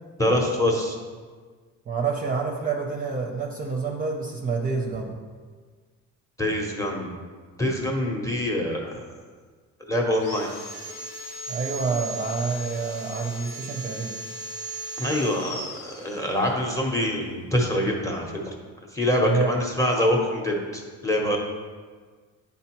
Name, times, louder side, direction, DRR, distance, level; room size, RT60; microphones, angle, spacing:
voice 1, 0.2-1.0 6.4-7.1 7.6-9.0 9.9-10.5 15.0-18.5 18.9-21.4, left 1 dB, 10° left, 0 dB, 0.7 m, -25 dB
voice 2, 1.9-5.1 11.5-14.1 19.2-19.5, right 4 dB, 25° right, 0 dB, 0.5 m, -28 dB
Sawing, 10.1-16.6, right 1 dB, 80° left, 1.3 m, -37 dB
9.5 x 3.8 x 2.9 m, 1.5 s
cardioid pair, 150°, 32 cm